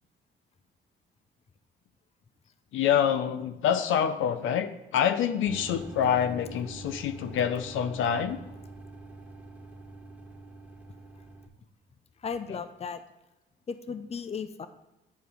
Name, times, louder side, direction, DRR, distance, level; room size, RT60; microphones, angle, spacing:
voice 1, 2.7-8.4, left 8 dB, 80° left, 10 dB, 0.6 m, -26 dB
sound 1, 5.4-11.5, right 2 dB, 10° right, 1.3 m, -45 dB
voice 2, 12.2-13.0 13.7-14.7, left 6 dB, 30° left, 11 dB, 0.6 m, -35 dB
9.3 x 4.7 x 5.2 m, 0.97 s
cardioid pair, 90°, 20 cm